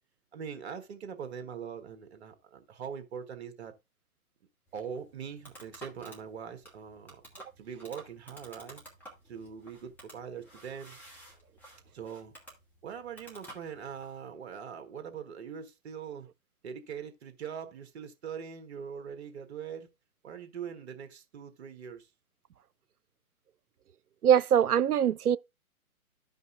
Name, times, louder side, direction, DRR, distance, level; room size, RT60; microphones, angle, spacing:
voice 1, 0.3-3.7 4.7-7.2 7.6-8.8 9.3-11.0 11.9-12.3 12.8-16.3 16.6-19.9 20.2-22.1, right 7 dB, 50° right, 1.4 m, -42 dB
sound 1, 4.7-14.2, right 1 dB, 5° left, 1.5 m, -52 dB
voice 2, 24.2-25.4, right 9 dB, 85° right, 0.6 m, -22 dB
13.5 x 5.4 x 2.4 m
hypercardioid pair, 135°, 43 cm